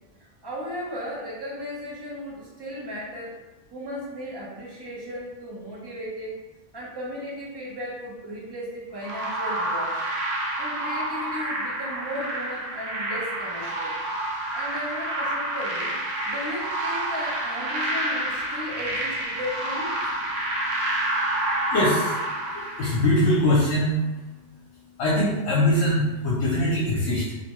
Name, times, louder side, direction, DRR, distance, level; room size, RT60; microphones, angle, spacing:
voice 1, 0.2-3.4 3.7-6.4 6.7-10.0 10.6-13.9 14.5-16.0 16.2-19.9, equal, 30° right, -5 dB, 0.5 m, -35 dB
sound 1, 9.0-23.4, right 1 dB, 85° right, 1.0 m, -29 dB
voice 2, 21.7-22.2 22.5-24.0 25.0-27.3, left 1 dB, 65° left, -5 dB, 0.9 m, -22 dB
2.7 x 2.2 x 2.9 m, 1.1 s
omnidirectional pair, 1.3 m